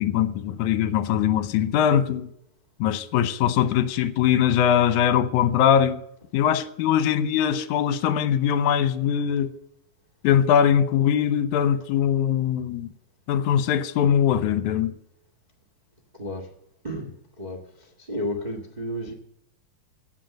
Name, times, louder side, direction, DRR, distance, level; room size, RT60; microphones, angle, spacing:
voice 1, 0.0-2.3 2.8-6.0 6.3-9.5 10.2-12.9 13.3-14.9, left 9 dB, 70° left, 2.0 m, -21 dB
voice 2, 16.2-16.5 16.8-19.1, equal, 45° right, 0.5 m, -32 dB
17.0 x 7.6 x 6.6 m
omnidirectional pair, 4.1 m